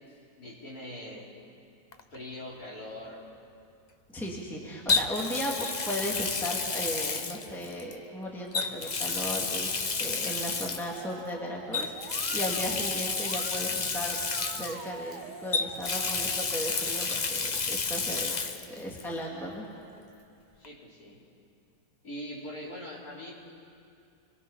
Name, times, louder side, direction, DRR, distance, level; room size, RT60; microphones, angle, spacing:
voice 1, 0.4-1.3 2.1-3.2 20.6-21.2 22.0-23.3, left 1 dB, 45° left, -5 dB, 4.6 m, -42 dB
Water tap faucet, 1.9-2.1 4.9-7.9 8.5-11.0 11.7-15.1 15.5-18.7 19.0-19.1 20.6-20.7, left 4 dB, 65° left, 0.4 m, -31 dB
voice 2, 4.1-14.2 14.5-18.4 18.7-19.7, equal, ahead, -3 dB, 2.4 m, -36 dB
Musical instrument, 10.9-16.5, right 7 dB, 65° right, 1.4 m, -46 dB
30.0 x 22.0 x 5.8 m, 2.5 s
omnidirectional pair, 2.2 m